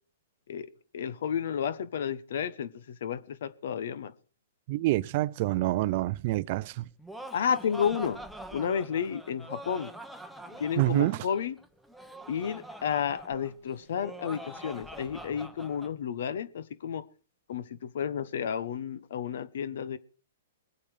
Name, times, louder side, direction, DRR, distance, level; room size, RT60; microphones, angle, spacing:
voice 1, 0.5-4.1 7.3-8.2 8.5-9.9 10.6-11.5 12.3-17.0 17.5-20.0, left 8 dB, 65° left, 1.2 m, -32 dB
voice 2, 4.7-6.8 10.8-11.2, right 18 dB, 45° right, 0.6 m, -27 dB
Laughter, 6.8-15.9, right 1 dB, ahead, 1.0 m, -44 dB
21.5 x 8.5 x 4.9 m
hypercardioid pair, 150°, 0 cm